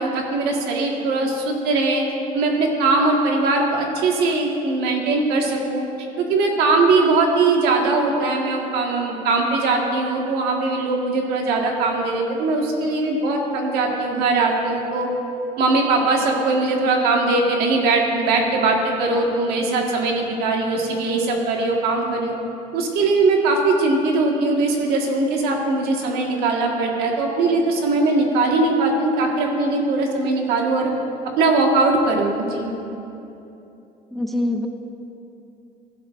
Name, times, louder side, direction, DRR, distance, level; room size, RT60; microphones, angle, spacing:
voice 1, 0.0-2.0 2.3-5.9 6.2-15.1 15.6-22.4 22.7-30.9 31.4-32.7, right 3 dB, 80° right, 0 dB, 1.7 m, -20 dB
voice 2, 34.1-34.7, left 1 dB, ahead, 4 dB, 0.5 m, -23 dB
15.5 x 12.0 x 2.6 m, 2.8 s
cardioid pair, 155°, 16 cm